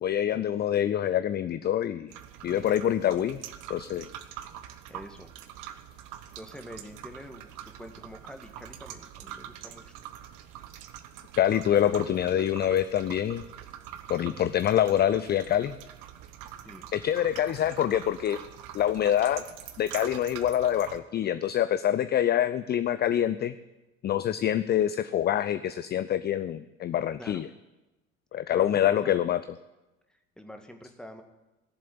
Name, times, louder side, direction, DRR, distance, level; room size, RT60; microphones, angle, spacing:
voice 1, 0.0-2.1 2.4-3.4 3.7-4.1 11.4-13.4 14.1-15.8 16.9-18.4 18.7-19.4 19.8-23.5 24.0-27.5 28.3-29.4, left 10 dB, 25° left, 13 dB, 0.5 m, -26 dB
sound 1, 2.1-21.0, right 11 dB, 50° right, 1.3 m, -45 dB
voice 2, 4.9-5.3 6.4-9.9 11.8-12.5 16.6-16.9 27.2-27.4 28.5-29.2 30.1-31.2, equal, ahead, 5 dB, 1.9 m, -46 dB
17.0 x 7.6 x 9.4 m, 1.1 s
figure-of-eight pair, 65°, 40 cm